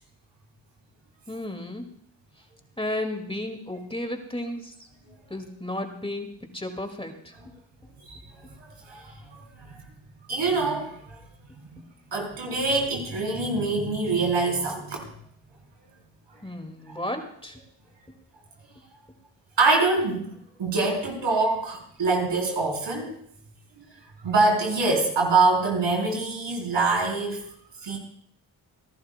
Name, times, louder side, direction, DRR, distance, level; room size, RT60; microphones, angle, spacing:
voice 1, 1.3-1.9 2.8-4.9 5.3-7.3 16.4-17.6, left 1 dB, 10° left, 5 dB, 2.1 m, -33 dB
voice 2, 8.6-9.8 10.3-11.2 11.7-11.8 12.1-15.1 16.9-17.0 19.6-20.3 20.6-23.1 23.8-23.9 24.2-27.4 27.8-28.0, right 3 dB, 75° right, -1 dB, 3.9 m, -25 dB
27.5 x 11.5 x 2.2 m, 0.67 s
supercardioid pair, 40°, 44 cm